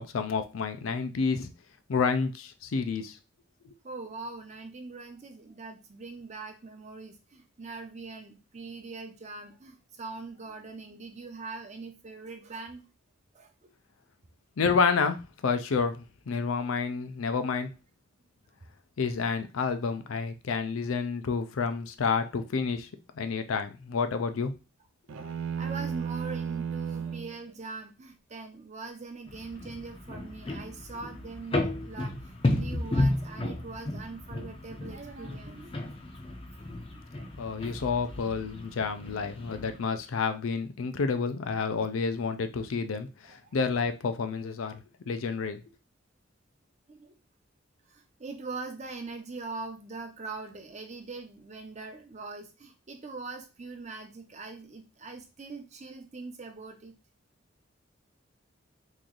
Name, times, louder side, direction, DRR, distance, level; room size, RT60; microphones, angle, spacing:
voice 1, 0.0-1.5 1.9-3.2 14.6-15.2 15.4-17.7 19.0-22.9 23.2-24.5 37.4-44.8 45.1-45.6, left 5 dB, 85° left, 9 dB, 0.5 m, -29 dB
voice 2, 3.8-12.8 13.3-13.7 22.3-22.4 25.6-35.7 36.9-37.0 43.2-43.6 46.9-47.2 47.9-57.0, right 3 dB, 35° right, 4 dB, 0.6 m, -42 dB
sound 1, 25.1-27.4, right 7 dB, 80° right, 0.4 m, -33 dB
sound 2, 29.3-39.8, left 1 dB, 25° left, 0.5 m, -33 dB
3.1 x 2.6 x 3.8 m, 0.30 s
head